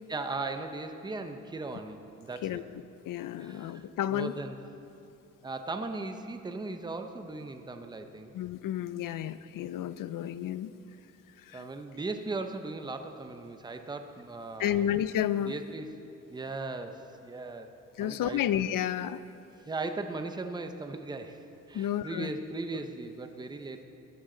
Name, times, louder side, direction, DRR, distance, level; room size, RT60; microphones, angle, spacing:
voice 1, 0.1-2.6 3.4-3.8 4.1-4.6 5.4-8.3 11.5-14.9 15.4-15.9 16.3-17.7 18.0-18.4 19.7-23.8, right 3 dB, 15° right, 7 dB, 0.6 m, -38 dB
voice 2, 3.1-4.3 8.3-10.7 11.5-11.6 14.6-15.5 18.0-19.2 21.7-22.3, left 11 dB, 90° left, 15 dB, 0.6 m, -31 dB
20.5 x 14.0 x 3.8 m, 2.8 s
wide cardioid pair, 160°, 32 cm